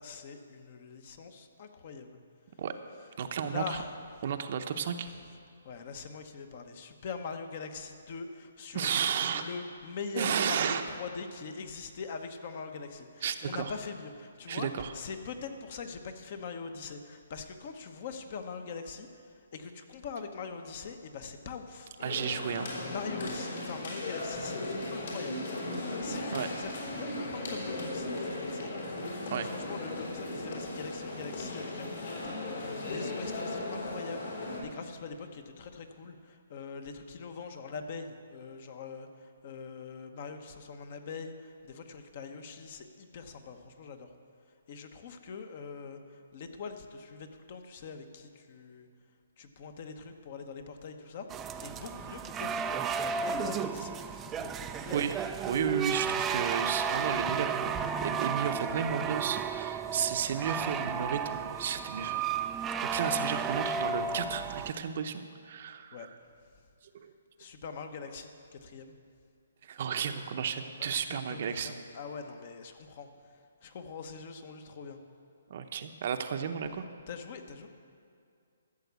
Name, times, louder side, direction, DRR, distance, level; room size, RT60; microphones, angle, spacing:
voice 1, 0.0-2.2 3.4-4.0 5.6-21.9 22.8-25.7 26.0-28.8 29.4-44.1 44.7-48.9 49.4-52.6 53.1-55.2 63.1-63.3 65.9-66.1 67.4-68.9 70.6-73.3 73.6-75.0 77.1-77.7, left 5 dB, 40° left, 7 dB, 1.0 m, -43 dB
voice 2, 3.2-3.8 4.2-5.1 8.7-9.5 10.1-10.8 13.2-13.7 14.5-14.9 22.0-22.7 26.3-26.5 29.3-29.5 54.9-55.2 55.5-62.2 62.8-66.1 66.9-67.1 69.6-71.7 75.5-76.8, right 7 dB, 45° right, 7 dB, 0.7 m, -33 dB
sound 1, 22.0-34.6, left 2 dB, 55° left, 3.3 m, -37 dB
sound 2, 51.3-64.7, right 6 dB, 10° right, 0.4 m, -33 dB
13.5 x 7.1 x 8.2 m, 2.3 s
hypercardioid pair, 165°, 0 cm